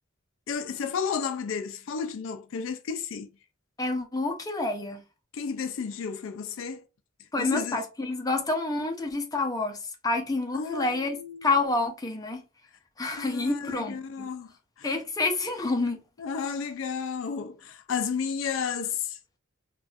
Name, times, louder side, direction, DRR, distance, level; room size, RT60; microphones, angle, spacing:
voice 1, 0.5-3.3 5.3-6.8 7.4-7.8 10.5-11.5 13.2-15.0 16.2-19.2, left 6 dB, 70° left, 0.4 m, -32 dB
voice 2, 3.8-5.0 7.3-9.8 10.0-11.2 11.4-12.4 13.0-14.3 14.8-16.0, left 2 dB, 20° left, 0.6 m, -28 dB
4.0 x 2.3 x 2.4 m
head